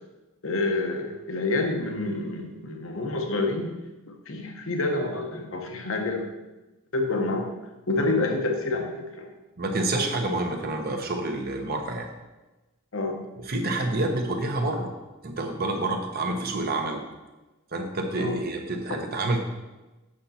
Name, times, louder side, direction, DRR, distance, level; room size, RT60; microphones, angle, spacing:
voice 1, 0.4-3.7 4.1-6.3 6.9-7.5 7.9-9.3 12.9-13.2 18.1-18.4, left 2 dB, 65° left, 3 dB, 1.1 m, -28 dB
voice 2, 9.6-12.1 13.5-14.9 15.2-17.0 17.7-19.4, right 2 dB, 45° right, 3 dB, 1.1 m, -28 dB
7.7 x 6.8 x 4.2 m, 1.1 s
head